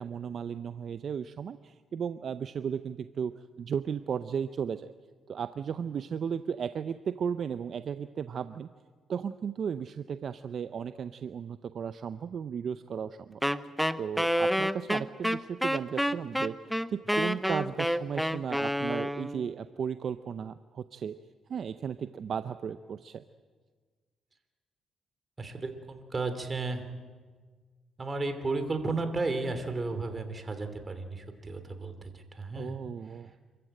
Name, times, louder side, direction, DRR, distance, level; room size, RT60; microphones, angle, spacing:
voice 1, 0.0-4.9 5.3-8.7 9.1-13.4 14.0-21.2 21.5-23.2 32.5-33.3, right 7 dB, 55° right, 11 dB, 0.6 m, -35 dB
Wind instrument woodwind instrument, 13.4-19.5, equal, ahead, 0.8 m, -29 dB
voice 2, 25.4-26.9 28.0-32.8 33.2-33.3, right 3 dB, 30° right, 8 dB, 3.0 m, -33 dB
27.0 x 14.5 x 8.9 m, 1.5 s
cardioid pair, 90°, 0 cm